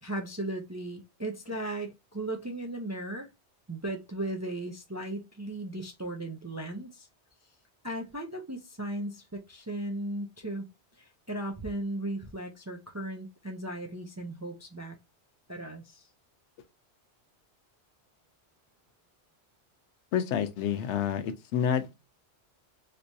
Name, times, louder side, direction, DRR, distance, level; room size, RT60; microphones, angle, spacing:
voice 1, 0.0-3.3 3.7-7.1 7.8-10.7 11.0-15.0 15.5-16.1, right 1 dB, 25° right, 0.3 m, -36 dB
voice 2, 20.1-21.9, left 8 dB, 85° left, 0.9 m, -29 dB
3.4 x 3.0 x 2.6 m
omnidirectional pair, 1.2 m